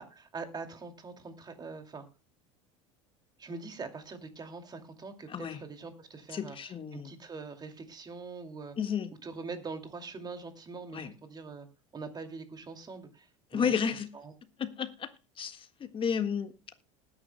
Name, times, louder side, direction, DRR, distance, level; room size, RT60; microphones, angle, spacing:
voice 1, 0.0-2.0 3.4-6.6 6.9-8.8 9.2-11.7 11.9-13.2 13.5-13.7, right 4 dB, 25° right, 2.4 m, -43 dB
voice 2, 5.3-5.6 6.3-7.1 8.8-9.1 10.9-11.1 13.5-14.1 14.6-15.1 15.4-16.7, left 7 dB, 30° left, 1.6 m, -32 dB
20.0 x 10.0 x 2.2 m
hypercardioid pair, 85°, 16 cm